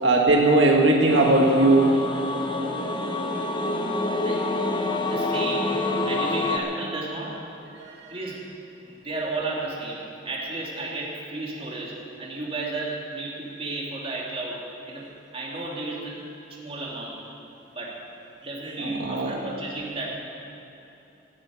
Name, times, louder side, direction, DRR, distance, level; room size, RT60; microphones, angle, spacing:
voice 1, 0.0-1.9 18.8-19.4, right 2 dB, 85° right, -1 dB, 1.7 m, -18 dB
sound 1, 1.1-6.6, left 2 dB, 25° left, 1.2 m, -27 dB
voice 2, 5.1-5.8 6.1-7.4 8.1-8.5 8.8-15.1 15.3-16.2 16.5-17.2 17.7-18.1 18.4-20.1, right 2 dB, 30° right, -3 dB, 2.9 m, -33 dB
17.0 x 8.7 x 8.7 m, 2.9 s
head